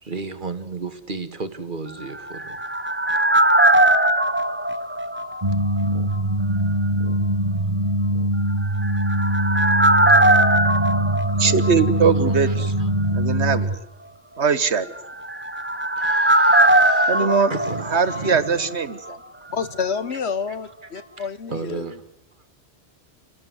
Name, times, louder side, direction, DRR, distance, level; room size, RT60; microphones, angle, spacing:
voice 1, 0.0-2.6 10.0-10.6 11.8-12.9 16.0-18.6 20.5-20.6 20.9-22.0, right 3 dB, 45° right, 2.0 m, -34 dB
sound 1, 2.0-5.9 6.1-6.2 8.6-12.3 12.6-12.7 15.0-18.8 19.1-19.2, right 1 dB, 10° right, 0.9 m, -20 dB
sound 2, 5.4-13.8, right 1 dB, 30° right, 1.8 m, -22 dB
voice 2, 11.3-12.5 13.1-13.7 14.4-14.9 17.1-17.5 17.9-19.2, right 6 dB, 75° right, 1.6 m, -21 dB
voice 3, 19.5-22.0, left 6 dB, 70° left, 1.5 m, -28 dB
29.5 x 18.5 x 7.9 m
omnidirectional pair, 1.1 m